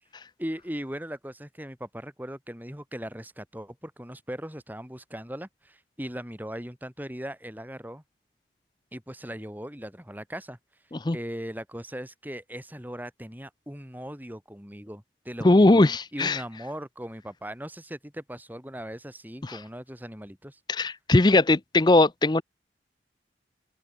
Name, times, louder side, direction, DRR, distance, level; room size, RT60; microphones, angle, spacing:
voice 1, 0.4-8.0 8.9-10.6 11.1-15.8 16.1-20.6, equal, 10° right, 4.4 m, -39 dB
voice 2, 15.4-16.4 19.4-19.6 20.7-22.4, left 2 dB, 25° left, 0.5 m, -20 dB
head